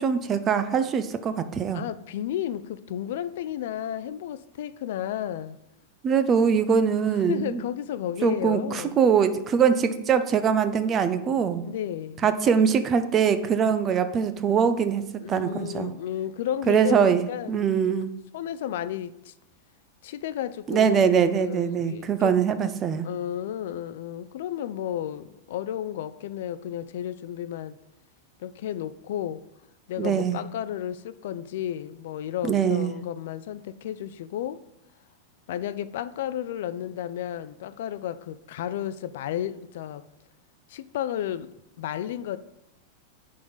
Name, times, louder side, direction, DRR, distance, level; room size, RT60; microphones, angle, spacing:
voice 1, 0.0-1.8 6.0-7.6 8.2-11.6 12.2-15.0 15.3-15.9 16.7-18.1 20.7-23.1 30.0-30.4 32.4-32.9, right 7 dB, 20° right, 0.4 m, -23 dB
voice 2, 1.7-5.6 7.1-9.0 11.6-12.2 15.2-17.7 18.3-19.3 20.0-21.0 21.3-22.4 23.0-27.8 28.4-29.4 29.9-34.6 35.5-40.1 40.7-41.5 41.8-42.4, left 11 dB, 60° left, 0.4 m, -33 dB
10.0 x 3.8 x 3.9 m
supercardioid pair, 170°, 0 cm